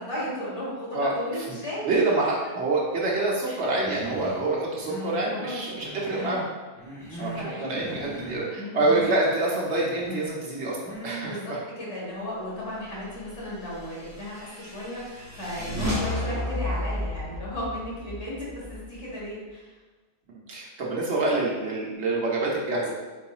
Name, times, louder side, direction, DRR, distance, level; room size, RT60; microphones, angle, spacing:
voice 1, 0.0-2.0 3.5-3.6 5.2-6.4 7.1-8.0 8.6-8.8 11.2-19.7, equal, 90° left, -7 dB, 1.9 m, -35 dB
voice 2, 1.8-6.4 7.2-11.6 20.5-22.9, right 2 dB, 75° right, -4 dB, 1.2 m, -26 dB
Human voice, 3.8-4.5 4.8-5.3 5.7-6.5 6.8-7.5 7.8-8.5 8.8-9.1 9.7-10.3 10.8-11.3, left 1 dB, 5° left, 1.1 m, -38 dB
sound 1, 13.7-19.3, left 1 dB, 20° right, 0.6 m, -32 dB
4.5 x 3.9 x 2.4 m, 1.3 s
omnidirectional pair, 1.1 m